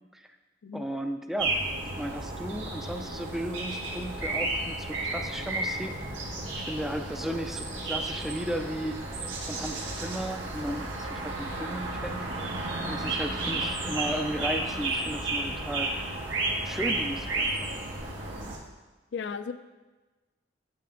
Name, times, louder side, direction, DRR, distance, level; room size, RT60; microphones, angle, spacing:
voice 1, 0.7-1.6 2.0-6.3 6.5-9.0 9.5-12.3 12.9-15.9 16.6-17.8, equal, ahead, 6 dB, 0.4 m, -35 dB
sound 1, 1.4-18.6, right 2 dB, 80° right, 1.6 m, -32 dB
voice 2, 19.1-19.5, left 5 dB, 65° left, 11 dB, 0.4 m, -35 dB
8.7 x 7.8 x 3.8 m, 1.2 s
head